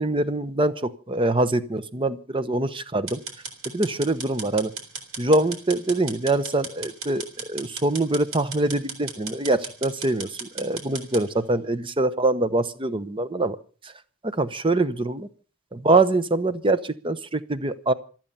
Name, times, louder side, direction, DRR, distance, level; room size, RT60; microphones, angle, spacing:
voice 1, 0.0-3.2 3.6-4.7 5.2-13.6 13.8-13.9 14.2-15.3 15.7-17.9, right 2 dB, 25° right, 13 dB, 0.9 m, -24 dB
sound 1, 3.1-11.2, right 5 dB, 85° right, 3.9 m, -36 dB
26.5 x 9.1 x 5.6 m, 0.38 s
head